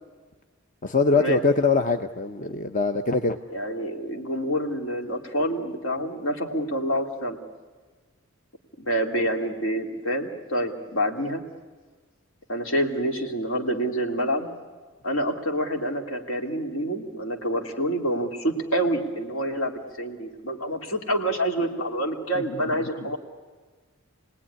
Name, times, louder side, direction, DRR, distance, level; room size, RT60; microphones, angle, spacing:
voice 1, 0.8-3.4, left 4 dB, 40° left, 7 dB, 0.7 m, -22 dB
voice 2, 3.5-7.4 8.8-11.4 12.5-14.5 15.0-23.2, right 1 dB, 70° left, 3 dB, 2.8 m, -27 dB
28.5 x 19.5 x 10.0 m, 1.4 s
head